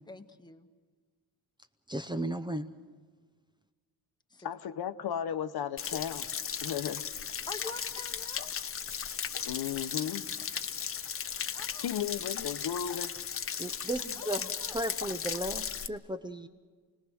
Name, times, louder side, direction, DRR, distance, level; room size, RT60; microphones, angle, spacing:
voice 1, 0.1-0.7 4.3-4.5 7.5-8.5 11.5-11.9 14.1-14.8, left 3 dB, 10° left, 6 dB, 1.1 m, -46 dB
voice 2, 1.9-2.7 13.6-16.5, right 1 dB, 10° right, 8 dB, 0.6 m, -35 dB
voice 3, 4.4-6.3 6.6-7.0 9.4-10.3 11.8-13.1, left 9 dB, 70° left, 10 dB, 1.0 m, -34 dB
Stream / Splash splatter / Trickle dribble, 5.8-15.9, left 7 dB, 35° left, 0.6 m, -36 dB
29.0 x 19.5 x 6.3 m, 1.5 s
wide cardioid pair, 165°, 40 cm